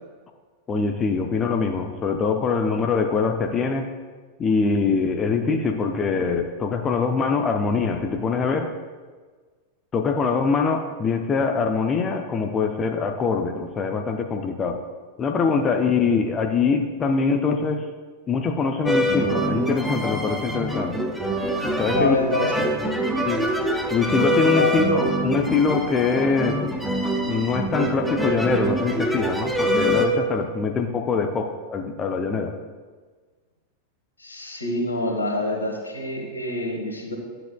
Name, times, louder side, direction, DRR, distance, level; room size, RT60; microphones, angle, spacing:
voice 1, 0.7-3.9 4.4-8.7 9.9-14.8 15.2-17.9 18.3-21.0 21.8-22.2 23.3-23.5 23.9-26.6 27.3-32.5, left 4 dB, 25° left, 4 dB, 0.6 m, -23 dB
sound 1, 18.9-30.1, equal, 5° right, 0.8 m, -24 dB
voice 2, 21.9-22.5 24.6-24.8 34.2-37.2, left 2 dB, 80° left, 1 dB, 1.5 m, -26 dB
11.5 x 7.6 x 2.2 m, 1.4 s
figure-of-eight pair, 90°, 0 cm